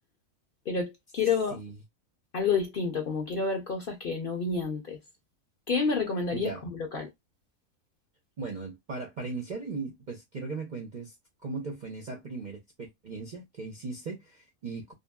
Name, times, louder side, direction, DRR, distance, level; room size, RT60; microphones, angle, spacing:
voice 1, 0.7-1.6 2.3-5.0 5.7-6.5 6.9-7.1, left 5 dB, 55° left, 0.6 m, -29 dB
voice 2, 8.4-11.1 11.4-14.9, right 4 dB, 55° right, 0.5 m, -38 dB
2.8 x 2.6 x 2.2 m
omnidirectional pair, 1.5 m